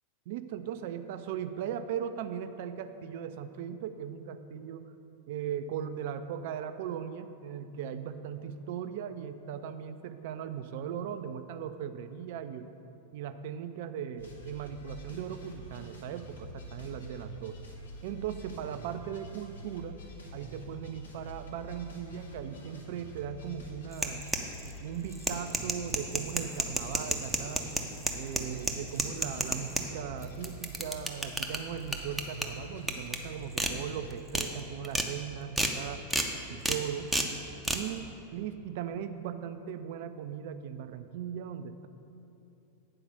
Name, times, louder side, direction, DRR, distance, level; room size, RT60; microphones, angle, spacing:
voice 1, 0.3-4.9 5.3-12.7 13.1-17.6 18.0-20.0 20.3-24.2 24.8-27.8 28.2-36.1 36.5-37.1 37.7-38.0 38.3-41.9, right 8 dB, 50° right, 9 dB, 0.4 m, -38 dB
sound 1, 14.2-34.1, equal, 70° left, 1.0 m, -47 dB
sound 2, 23.9-24.7 25.1-29.8 30.2-31.6 31.9-32.4 32.9-33.2 33.6-33.7 34.1-34.5 34.8-35.1 35.6-35.7 36.1-36.3 36.6-36.8 37.1-37.3 37.6-37.8, right 1 dB, 5° right, 0.6 m, -30 dB
8.7 x 4.6 x 6.5 m, 2.8 s
figure-of-eight pair, 90°, 0 cm